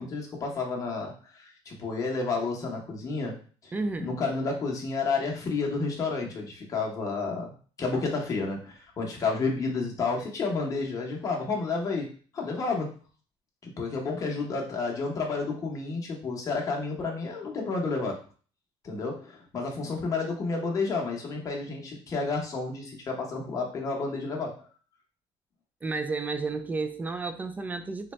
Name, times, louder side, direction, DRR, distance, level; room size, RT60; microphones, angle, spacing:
voice 1, 0.0-3.4 3.6-3.7 4.0-7.5 7.8-12.1 12.3-12.9 13.6-18.2 18.8-24.7, left 4 dB, 30° left, -1 dB, 0.9 m, -30 dB
voice 2, 3.7-4.2 25.8-28.1, right 3 dB, 15° right, 8 dB, 0.3 m, -32 dB
3.9 x 2.2 x 3.1 m, 0.40 s
cardioid pair, 145°, 11 cm